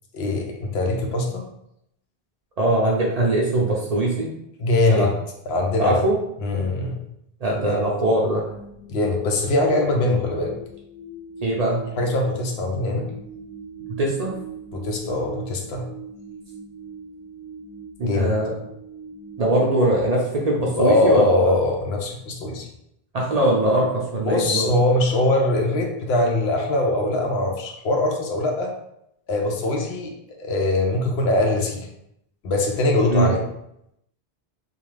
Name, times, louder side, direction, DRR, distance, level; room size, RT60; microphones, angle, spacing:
voice 1, 0.1-1.4 4.6-5.1 5.5-6.0 6.4-7.0 7.6-7.8 8.9-10.6 12.0-13.1 14.7-15.8 18.0-18.3 20.8-22.7 24.2-28.7 29.3-31.8 32.4-33.4, left 2 dB, 85° left, 2 dB, 0.8 m, -22 dB
voice 2, 2.6-4.3 4.9-5.1 5.8-6.2 7.4-8.4 11.4-11.8 14.0-14.3 18.0-18.5 19.4-21.3 23.1-24.7 33.1-33.3, right 1 dB, 50° right, -2 dB, 0.5 m, -21 dB
sound 1, 8.4-20.5, right 3 dB, 40° left, 0.6 m, -40 dB
2.4 x 2.3 x 3.1 m, 0.79 s
omnidirectional pair, 1.0 m